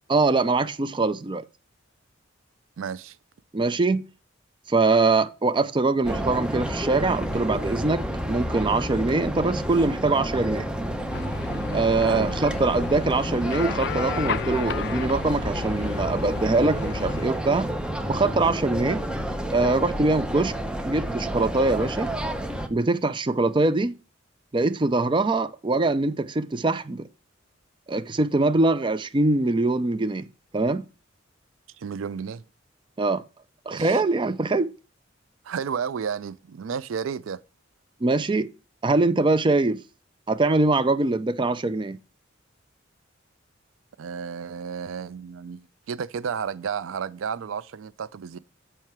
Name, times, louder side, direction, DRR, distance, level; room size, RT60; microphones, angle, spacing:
voice 1, 0.1-1.4 3.5-4.0 4.7-10.7 11.7-17.7 18.1-19.0 19.5-20.5 20.8-22.1 22.7-23.9 24.5-27.0 27.9-30.3 30.5-30.8 33.0-33.2 33.7-34.7 38.0-38.5 38.8-39.8 40.3-42.0, right 3 dB, 25° right, 0.5 m, -23 dB
voice 2, 2.8-3.2 12.0-12.3 31.8-32.4 33.7-34.0 35.4-37.4 44.0-48.4, right 6 dB, 80° right, 0.4 m, -32 dB
sound 1, 6.0-22.7, equal, 5° right, 0.8 m, -30 dB
sound 2, 11.1-17.3, left 7 dB, 60° left, 0.4 m, -34 dB
7.4 x 5.6 x 4.5 m
head